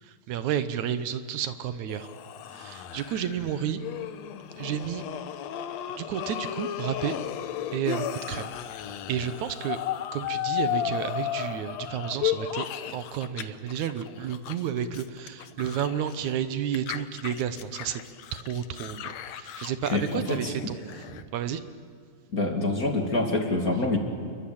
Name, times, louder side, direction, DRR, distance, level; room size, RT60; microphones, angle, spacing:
voice 1, 0.0-2.1 2.5-3.8 4.6-5.0 6.0-7.2 7.7-8.5 9.1-9.8 10.1-12.7 12.9-18.0 18.3-21.6, right 9 dB, 75° right, 12 dB, 2.4 m, -31 dB
sound 1, 1.9-13.4 13.7-16.3 16.7-21.2, left 10 dB, 65° left, 2.1 m, -34 dB
voice 2, 19.9-20.5 22.3-24.0, left 2 dB, 30° left, 3 dB, 2.8 m, -26 dB
28.5 x 23.0 x 8.8 m, 2.3 s
omnidirectional pair, 3.4 m